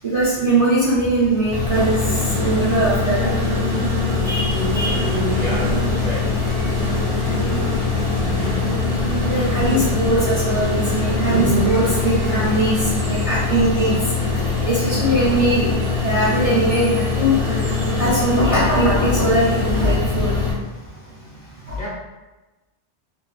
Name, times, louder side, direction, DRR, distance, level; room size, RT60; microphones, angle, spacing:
voice 1, 0.0-3.3 4.2-5.0 7.7-7.8 9.3-13.9 14.6-15.7 16.0-20.4 21.7-21.8, right 1 dB, 45° right, -10 dB, 0.5 m, -21 dB
sound 1, 1.5-20.5, left 5 dB, 25° left, 0.5 m, -23 dB
sound 2, 1.7-20.0, right 1 dB, 80° right, 0.9 m, -27 dB
sound 3, 4.1-15.1 17.3-17.4, left 1 dB, 80° left, 0.9 m, -35 dB
voice 2, 5.3-6.2 8.4-8.7 21.8-21.9, left 1 dB, 50° left, -7 dB, 0.8 m, -31 dB
2.4 x 2.2 x 2.3 m, 1.1 s
omnidirectional pair, 1.2 m